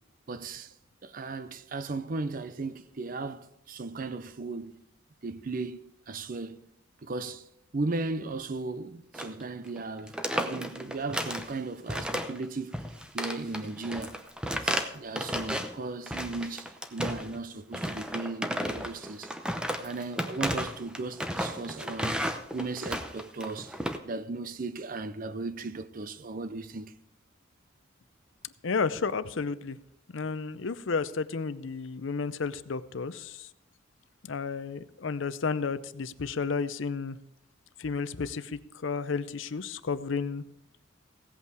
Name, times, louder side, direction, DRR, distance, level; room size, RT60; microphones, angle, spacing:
voice 1, 0.3-0.7 1.0-4.8 5.2-5.8 6.1-6.6 7.0-7.5 7.7-12.7 13.1-19.3 19.8-22.2 22.5-23.8 24.0-26.9, right 3 dB, 45° right, 0.5 m, -36 dB
sound 1, 9.1-9.4 9.7-9.8 10.1-11.5 11.9-12.5 12.7-15.7 16.1-17.4 17.7-24.0, equal, 5° right, 0.7 m, -33 dB
voice 2, 28.6-29.8 30.1-33.5 34.2-37.2 37.8-40.4, left 5 dB, 70° left, 0.6 m, -32 dB
16.5 x 8.2 x 4.8 m
head